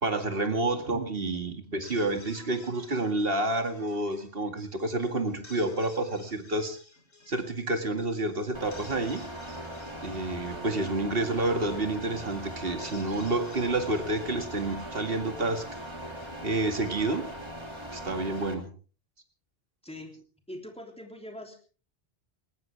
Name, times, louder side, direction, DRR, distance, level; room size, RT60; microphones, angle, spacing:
voice 1, 0.0-6.8 7.3-9.3 10.0-15.7 16.4-17.3 17.9-18.7, right 2 dB, 60° right, 6 dB, 2.4 m, -29 dB
sound 1, 1.6-16.9, left 2 dB, 80° left, 5.0 m, -55 dB
sound 2, 8.5-18.5, equal, 25° right, 2.8 m, -40 dB
voice 2, 20.5-21.6, left 1 dB, 5° left, 3 dB, 3.3 m, -42 dB
20.0 x 19.5 x 3.4 m, 0.38 s
omnidirectional pair, 1.1 m